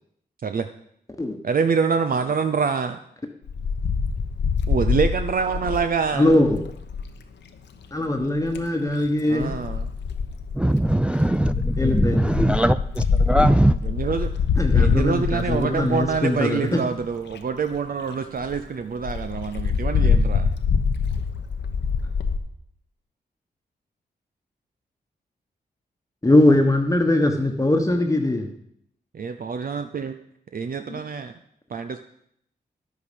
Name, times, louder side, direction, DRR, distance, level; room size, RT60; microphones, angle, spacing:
voice 1, 1.4-3.0 4.7-6.3 9.3-9.9 13.8-14.3 14.7-20.5 29.1-30.2 30.5-31.3 31.7-32.0, right 5 dB, 55° right, 0.6 m, -26 dB
Wind, 3.5-7.1 8.2-8.7 9.4-16.4 17.0-17.1 17.3-17.4 17.7-17.8 18.1-18.2 18.4-18.6 19.0-22.4, left 5 dB, 80° left, 1.0 m, -24 dB
voice 2, 6.1-6.6 7.9-9.5 11.8-12.3 14.5-16.8 26.2-28.5, left 1 dB, 20° left, 1.2 m, -21 dB
voice 3, 10.5-13.8, right 1 dB, 5° right, 0.4 m, -20 dB
9.9 x 8.1 x 5.2 m
cardioid pair, 50°, 18 cm